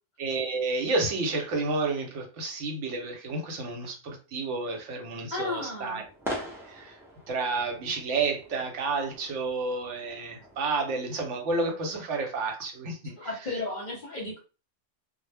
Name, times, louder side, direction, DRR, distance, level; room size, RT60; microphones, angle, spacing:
voice 1, 0.2-6.0 6.7-7.0 7.3-13.1, right 3 dB, 80° right, 2 dB, 1.0 m, -30 dB
voice 2, 5.3-6.0 13.2-14.4, left 2 dB, 45° left, -1 dB, 0.7 m, -34 dB
sound 1, 5.5-10.6, equal, 5° right, 0.4 m, -42 dB
2.1 x 2.0 x 3.2 m, 0.33 s
omnidirectional pair, 1.2 m